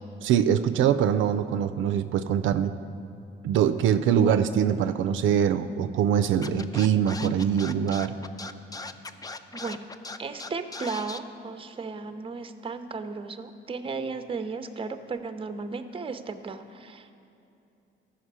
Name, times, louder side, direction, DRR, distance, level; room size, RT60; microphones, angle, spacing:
voice 1, 0.2-2.7 3.4-8.1, right 9 dB, 75° right, 10 dB, 0.4 m, -23 dB
voice 2, 4.0-4.4 9.5-9.8 10.2-17.1, right 4 dB, 25° right, 9 dB, 0.6 m, -35 dB
Scratching (performance technique), 6.4-11.2, left 3 dB, 20° left, 0.4 m, -38 dB
14.0 x 5.9 x 4.7 m, 2.7 s
cardioid pair, 90°, 20 cm